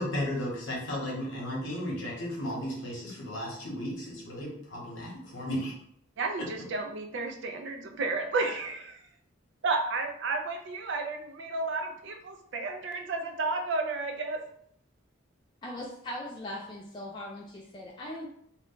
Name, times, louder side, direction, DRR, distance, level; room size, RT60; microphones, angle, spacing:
voice 1, 0.0-5.7 6.4-6.5, left 1 dB, 65° left, -2 dB, 0.9 m, -34 dB
voice 2, 6.2-9.0 9.6-14.4, right 3 dB, 60° right, 4 dB, 0.4 m, -32 dB
voice 3, 15.6-18.3, left 1 dB, 20° left, -3 dB, 0.3 m, -39 dB
2.3 x 2.2 x 3.7 m, 0.68 s
head